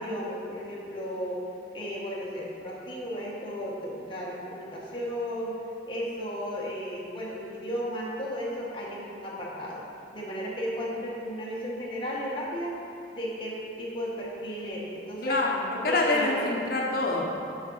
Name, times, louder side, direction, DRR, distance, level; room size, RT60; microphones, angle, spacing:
voice 1, 0.0-1.4 1.7-5.5 5.9-9.8 10.1-12.7 13.1-15.4 15.8-16.5, equal, 25° left, -5 dB, 1.4 m, -34 dB
voice 2, 15.2-17.2, left 2 dB, 55° left, -2 dB, 1.1 m, -26 dB
9.1 x 5.2 x 4.6 m, 2.6 s
head